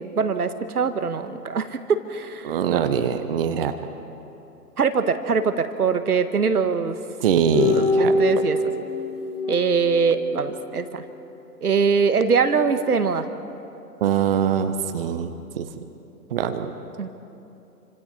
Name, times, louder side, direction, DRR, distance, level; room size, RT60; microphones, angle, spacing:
voice 1, 0.0-2.8 4.8-7.0 7.6-8.6 9.5-11.0 11.6-13.3 17.0-17.1, right 5 dB, 65° right, 10 dB, 1.6 m, -23 dB
voice 2, 2.4-3.7 7.2-8.2 14.0-15.8 16.3-16.7, right 8 dB, 35° right, 9 dB, 1.1 m, -23 dB
sound 1, 7.5-10.8, left 2 dB, 45° left, 3.2 m, -24 dB
29.0 x 26.0 x 4.3 m, 2.9 s
figure-of-eight pair, 125°, 48 cm